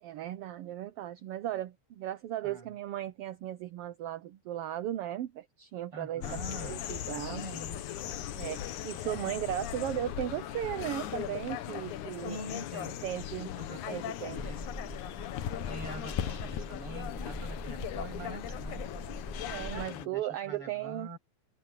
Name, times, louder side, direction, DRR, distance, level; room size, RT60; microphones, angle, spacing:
voice 1, 0.0-7.5 8.3-12.4 13.0-14.4 19.4-21.1, right 12 dB, 75° right, 1.4 m, -36 dB
voice 2, 5.9-6.9 7.2-7.8 12.1-13.0 13.6-13.8 14.3-14.7 15.6-18.8 19.7-21.2, right 2 dB, 45° right, 8.3 m, -44 dB
sound 1, 6.2-20.1, left 11 dB, 80° left, 2.5 m, -38 dB
sound 2, 14.3-19.9, equal, ahead, 2.5 m, -42 dB
omnidirectional pair, 3.4 m